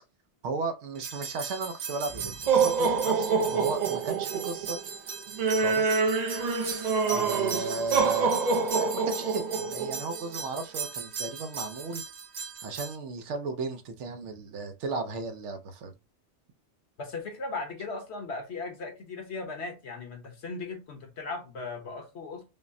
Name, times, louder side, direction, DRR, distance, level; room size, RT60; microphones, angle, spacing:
voice 1, 0.4-4.8 5.5-6.0 7.1-12.0 12.6-15.9, right 3 dB, 80° right, 1.0 m, -35 dB
sound 1, 1.0-12.9, right 5 dB, 50° right, 0.5 m, -28 dB
voice 2, 17.0-22.4, left 3 dB, 65° left, 1.2 m, -37 dB
5.3 x 2.1 x 2.6 m
omnidirectional pair, 1.2 m